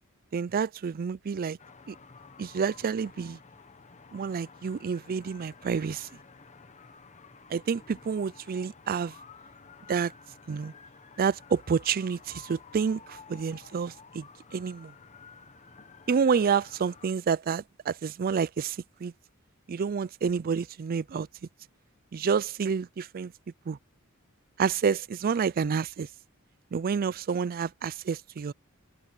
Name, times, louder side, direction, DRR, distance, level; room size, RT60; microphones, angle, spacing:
voice 1, 0.3-1.6 1.9-2.0 2.4-3.4 4.1-6.1 7.5-9.1 9.9-10.1 10.5-10.7 11.2-14.3 14.5-14.9 16.1-19.1 19.7-21.3 22.1-23.3 23.7-23.8 24.6-26.1 26.7-28.5, right 6 dB, 45° right, 0.4 m, -29 dB
sound 1, 1.6-17.1, left 5 dB, 35° left, 1.2 m, -52 dB
open air
head